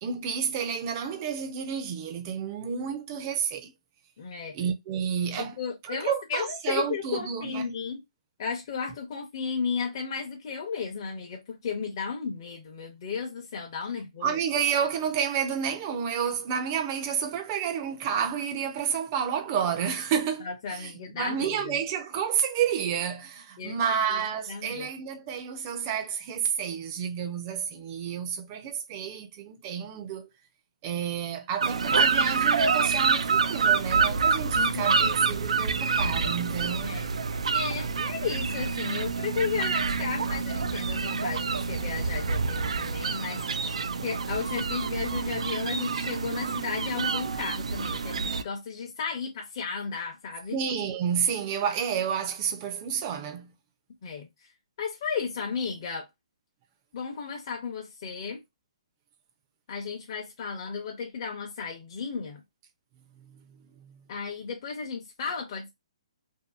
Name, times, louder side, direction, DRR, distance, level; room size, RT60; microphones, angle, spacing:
voice 1, 0.0-3.7 4.5-5.6 5.9-7.9 14.2-30.3 30.8-37.0 50.5-53.5 63.8-63.9, right 7 dB, 25° right, 0.5 m, -30 dB
voice 2, 4.2-4.6 5.4-8.0 8.4-14.4 20.4-21.8 23.6-23.8 24.1-24.2 24.5-24.9 34.5-35.2 36.8-37.1 37.5-50.6 54.0-54.3 54.8-56.1 56.9-58.4 59.7-62.4 64.1-65.7, left 5 dB, 40° left, 0.7 m, -34 dB
sound 1, 31.6-48.4, right 5 dB, 85° right, 0.3 m, -27 dB
2.7 x 2.5 x 2.4 m
hypercardioid pair, 160°, 3 cm